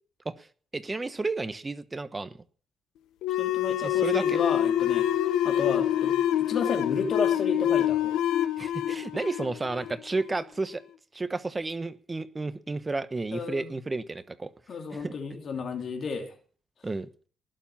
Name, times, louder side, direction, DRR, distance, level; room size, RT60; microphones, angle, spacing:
voice 1, 0.7-2.4 3.8-4.4 8.6-10.8 11.1-14.5 14.9-15.1 16.8-17.1, right 3 dB, 25° right, 13 dB, 1.1 m, -32 dB
sound 1, 3.2-10.4, left 11 dB, 85° left, 1.1 m, -26 dB
voice 2, 3.4-5.1 5.4-6.2 6.4-8.1 13.3-13.7 14.7-16.3, left 5 dB, 55° left, 6 dB, 2.8 m, -32 dB
19.5 x 7.3 x 7.3 m, 0.43 s
cardioid pair, 90°, 0 cm